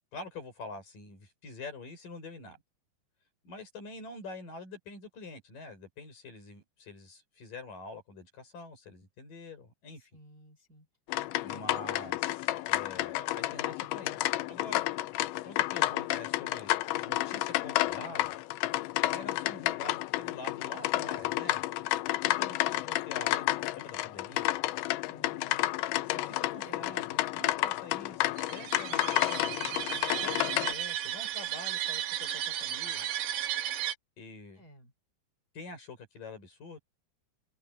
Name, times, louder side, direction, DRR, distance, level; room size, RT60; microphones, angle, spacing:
voice 1, 0.1-2.6 3.4-10.1 11.4-14.8 15.4-16.8 17.1-18.3 19.1-21.6 22.4-24.6 26.1-27.1 27.3-29.6 30.2-33.1 34.2-34.6 35.5-36.8, left 3 dB, 45° left, 7.6 m, -46 dB
voice 2, 10.0-10.9 11.3-11.7 25.0-25.7 26.6-27.3 28.8-30.2 34.5-34.9, equal, 20° right, 3.8 m, -54 dB
sound 1, 11.1-30.7, left 17 dB, 90° left, 3.0 m, -31 dB
sound 2, 28.4-33.9, right 12 dB, 70° right, 3.3 m, -34 dB
omnidirectional pair, 5.3 m